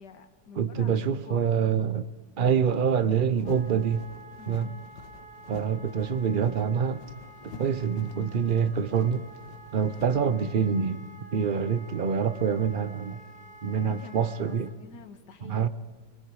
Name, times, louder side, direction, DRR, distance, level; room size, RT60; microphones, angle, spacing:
voice 1, 0.0-1.5 4.4-4.9 11.5-12.1 12.7-12.9 13.7-15.7, left 5 dB, 70° left, 8 dB, 2.2 m, -49 dB
voice 2, 0.6-2.1 2.4-4.0 4.5-4.7 5.5-7.0 7.6-9.2 9.7-13.2 13.6-14.7 15.4-15.7, right 7 dB, 50° right, 13 dB, 0.6 m, -26 dB
sound 1, 3.3-10.2, left 5 dB, 85° left, 1.9 m, -48 dB
Wind instrument woodwind instrument, 3.4-14.7, right 2 dB, 25° left, 1.2 m, -50 dB
29.5 x 22.5 x 4.8 m, 1.4 s
omnidirectional pair, 1.9 m